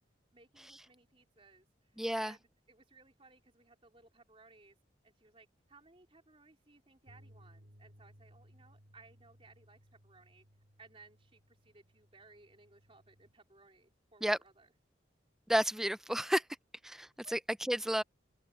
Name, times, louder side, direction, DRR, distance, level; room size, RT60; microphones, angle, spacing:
voice 1, 0.3-4.8 5.0-10.5 10.8-14.7 17.2-17.3, right 3 dB, 30° right, 3.9 m, -61 dB
voice 2, 2.0-2.3 14.2-14.4 15.5-16.4 16.8-18.0, equal, ahead, 0.4 m, -32 dB
sound 1, 7.1-13.3, equal, 80° right, 3.7 m, -62 dB
head